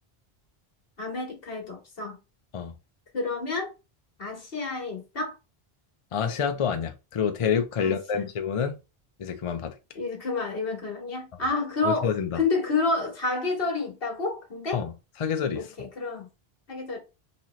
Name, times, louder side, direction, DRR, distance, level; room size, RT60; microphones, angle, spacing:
voice 1, 1.0-2.2 3.1-3.7 4.2-5.3 7.8-8.3 9.9-14.8 15.5-16.3 16.7-17.0, left 3 dB, 65° left, 1.5 m, -29 dB
voice 2, 6.1-8.8 9.2-9.7 11.8-12.4 14.7-14.9 15.2-15.7, left 7 dB, 45° left, 0.4 m, -27 dB
4.1 x 2.9 x 3.0 m
omnidirectional pair, 1.0 m